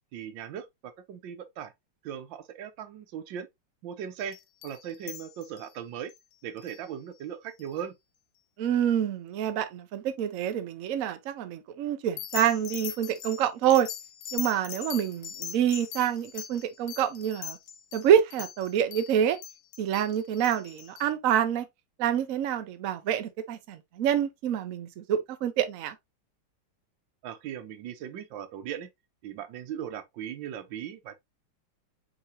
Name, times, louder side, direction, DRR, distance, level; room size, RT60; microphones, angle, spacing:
voice 1, 0.1-1.7 2.0-3.5 3.8-4.4 4.6-6.1 6.4-7.9 27.2-28.9 29.2-31.2, right 9 dB, 70° right, 1.4 m, -38 dB
sound 1, 4.2-5.7 6.1-6.2 6.6-6.8 7.6-7.7 12.2-21.1, left 9 dB, 90° left, 1.5 m, -41 dB
voice 2, 8.6-13.9 14.3-17.6 17.9-19.4 19.8-21.6 22.0-25.9, right 9 dB, 85° right, 0.7 m, -27 dB
4.8 x 3.8 x 2.7 m
omnidirectional pair, 2.3 m